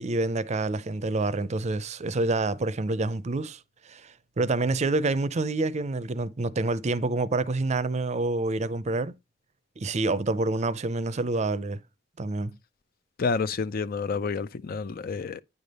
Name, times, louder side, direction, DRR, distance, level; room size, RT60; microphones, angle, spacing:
voice 1, 0.0-3.6 3.9-9.1 9.8-11.8 12.2-12.6, right 2 dB, 35° right, 0.5 m, -27 dB
voice 2, 13.2-15.4, left 5 dB, 50° left, 0.4 m, -29 dB
9.7 x 3.4 x 5.3 m
head